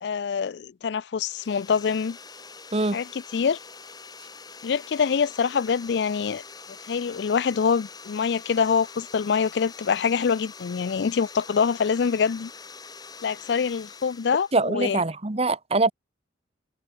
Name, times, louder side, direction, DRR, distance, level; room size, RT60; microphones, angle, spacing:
voice 1, 0.0-2.2 2.9-3.1 3.3-3.6 4.6-6.4 6.9-12.5 13.2-15.0, left 6 dB, 65° left, 0.4 m, -25 dB
sound 1, 1.2-14.7, left 5 dB, 20° left, 1.8 m, -44 dB
voice 2, 14.5-15.9, right 2 dB, 35° right, 1.0 m, -23 dB
head